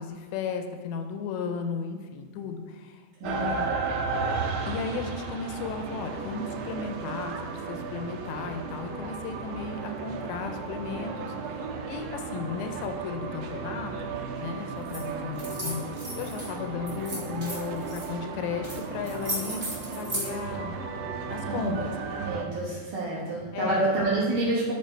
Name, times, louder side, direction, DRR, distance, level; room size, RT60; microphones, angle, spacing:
voice 1, 0.0-3.7 4.7-19.7 20.0-20.8 21.3-21.9 23.5-23.9, left 5 dB, 85° left, 6 dB, 2.8 m, -35 dB
sound 1, 3.2-22.5, right 4 dB, 85° right, 2.3 m, -34 dB
sound 2, 14.8-15.0 15.3-16.5 16.9-18.0 18.6-18.8 19.0-20.3, right 1 dB, 30° right, 0.9 m, -35 dB
voice 2, 21.5-24.7, right 2 dB, 60° right, -6 dB, 2.4 m, -28 dB
10.0 x 3.5 x 4.4 m, 1.5 s
omnidirectional pair, 5.0 m